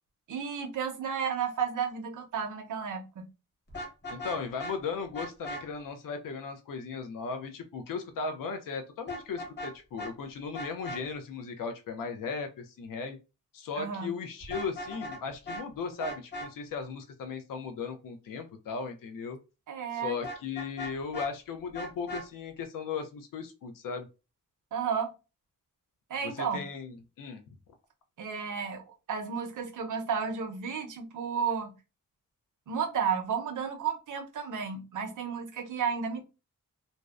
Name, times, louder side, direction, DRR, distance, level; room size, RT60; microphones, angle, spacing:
voice 1, 0.3-3.3 13.7-14.1 19.7-20.2 24.7-25.1 26.1-26.6 28.2-31.7 32.7-36.2, right 6 dB, 70° right, 0.6 m, -32 dB
Vehicle horn car horn honking, 3.7-4.7 5.1-5.6 9.1-9.7 10.0-10.1 10.5-11.0 14.4-15.2 15.4-15.6 16.0-16.5 20.2-21.3 21.7-22.2, equal, 35° left, 0.9 m, -38 dB
voice 2, 4.1-13.2 13.5-19.4 19.9-24.1 26.2-27.6, left 5 dB, 90° left, 0.5 m, -37 dB
2.6 x 2.0 x 2.3 m
wide cardioid pair, 135°, 32 cm